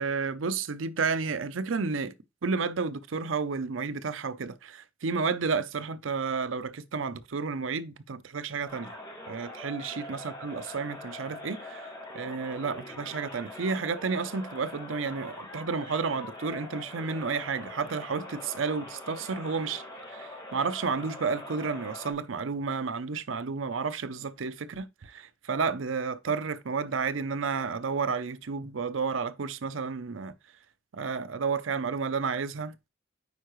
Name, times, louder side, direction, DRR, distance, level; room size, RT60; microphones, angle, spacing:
voice 1, 0.0-2.1 2.4-8.9 9.3-30.3 30.9-32.7, right 5 dB, 90° right, 0.6 m, -31 dB
sound 1, 8.7-22.1, left 1 dB, 20° left, 1.8 m, -43 dB
9.4 x 4.5 x 3.1 m
head